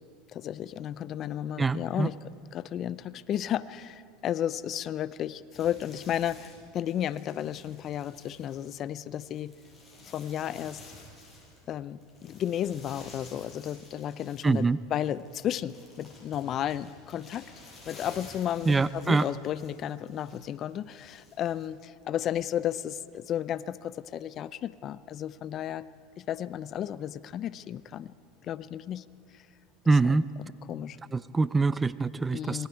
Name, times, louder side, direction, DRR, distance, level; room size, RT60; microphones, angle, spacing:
voice 1, 0.3-2.2 2.5-9.5 10.0-10.8 11.7-17.5 17.9-25.9 26.2-28.1 28.4-29.0 30.0-30.1 30.7-31.0 32.3-32.7, left 10 dB, 45° left, 17 dB, 0.6 m, -33 dB
voice 2, 1.6-2.1 14.4-14.8 18.7-19.3 29.9-30.2 31.1-32.7, right 3 dB, 15° right, 17 dB, 0.5 m, -24 dB
sound 1, 5.5-11.7 12.0-21.7, left 2 dB, 15° left, 7.5 m, -52 dB
27.0 x 21.5 x 4.6 m, 2.3 s
supercardioid pair, 110°, 0 cm